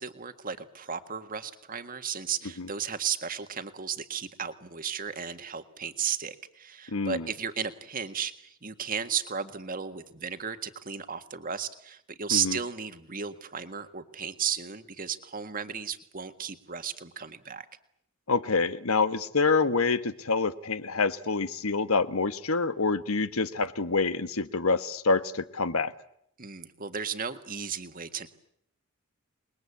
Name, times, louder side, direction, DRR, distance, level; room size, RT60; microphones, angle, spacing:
voice 1, 0.0-17.7 26.4-28.3, right 7 dB, 40° right, 9 dB, 1.7 m, -34 dB
voice 2, 6.9-7.3 12.3-12.6 18.3-25.9, left 4 dB, 90° left, 13 dB, 1.3 m, -27 dB
27.5 x 21.0 x 8.5 m, 0.71 s
head